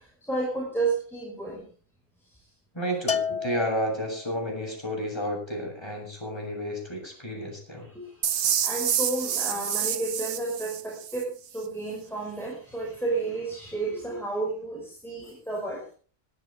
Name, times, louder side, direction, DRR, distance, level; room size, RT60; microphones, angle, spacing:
voice 1, 0.0-1.6 7.8-15.9, right 3 dB, ahead, -3 dB, 5.7 m, -32 dB
voice 2, 2.7-7.9, equal, 20° left, 0 dB, 7.6 m, -31 dB
Bell, 3.1-4.4, left 6 dB, 40° left, 0.6 m, -31 dB
sound 1, 8.2-11.2, right 9 dB, 85° right, 1.4 m, -28 dB
22.0 x 12.5 x 3.7 m, 0.41 s
omnidirectional pair, 1.4 m